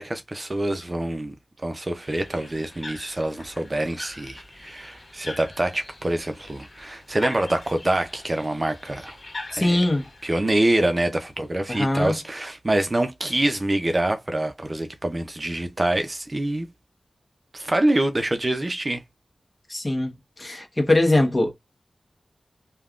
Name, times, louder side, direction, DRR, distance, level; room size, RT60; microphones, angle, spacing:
voice 1, 0.0-1.3 1.6-9.2 9.6-9.8 10.2-16.7 17.5-19.0, right 1 dB, 40° right, 0.5 m, -25 dB
sound 1, 2.0-11.8, left 2 dB, 55° left, 1.3 m, -43 dB
voice 2, 9.5-10.1 11.7-12.1 19.7-20.1 20.4-21.5, left 1 dB, 35° left, 1.0 m, -21 dB
3.4 x 2.2 x 2.4 m
cardioid pair, 45°, 0 cm